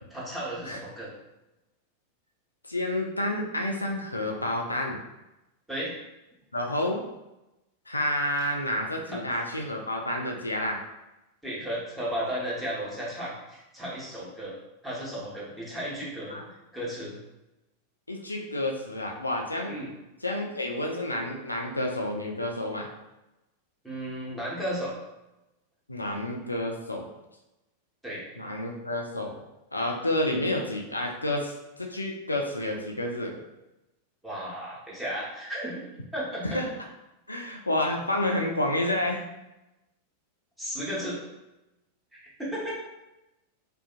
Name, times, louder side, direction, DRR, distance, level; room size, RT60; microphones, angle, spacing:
voice 1, 0.1-1.1 5.7-5.9 9.1-9.2 11.4-14.5 14.8-16.4 16.7-17.1 19.7-19.9 23.8-24.9 28.0-28.2 34.2-36.6 40.6-41.2 42.1-42.7, equal, 5° right, -7 dB, 1.0 m, -34 dB
voice 2, 2.7-5.0 6.5-7.0 7.9-10.8 16.3-16.4 18.1-19.7 20.2-22.9 25.9-27.1 28.4-29.4 29.7-31.5 31.8-33.4 36.4-36.7 37.3-39.2, left 1 dB, 80° left, 2 dB, 0.3 m, -29 dB
2.6 x 2.4 x 2.3 m, 0.97 s
figure-of-eight pair, 90°, 0 cm